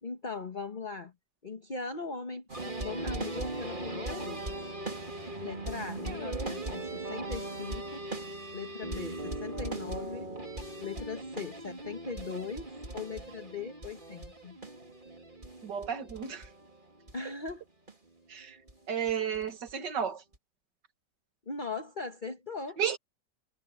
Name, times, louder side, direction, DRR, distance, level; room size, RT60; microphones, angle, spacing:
voice 1, 0.0-1.1 1.4-4.4 5.4-8.0 8.5-10.3 10.8-14.6 17.1-17.6 21.4-22.8, left 4 dB, 30° left, 1.5 m, -39 dB
sound 1, 2.5-17.2 17.5-17.6 17.9-18.0 18.7-18.8 19.1-19.7 20.3-20.4, right 2 dB, 30° right, 2.9 m, -39 dB
voice 2, 15.6-16.5 18.3-18.6 18.9-20.2 22.8-23.0, right 8 dB, 85° right, 2.3 m, -32 dB
omnidirectional pair, 1.8 m